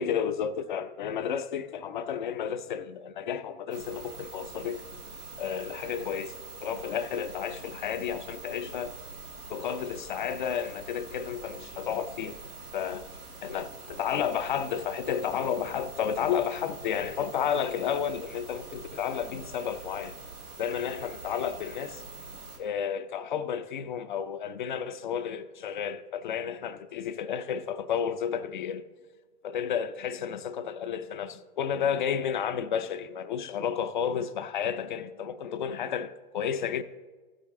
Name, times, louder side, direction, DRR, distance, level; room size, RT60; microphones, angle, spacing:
voice 1, 0.0-4.8 5.4-8.9 9.5-12.4 12.7-13.0 13.4-20.2 20.6-22.0 22.6-28.8 29.4-36.8, left 8 dB, 35° left, 0.4 m, -32 dB
sound 1, 3.7-22.6, right 3 dB, 90° right, 3.9 m, -44 dB
14.5 x 7.5 x 3.6 m
figure-of-eight pair, 120°, 44 cm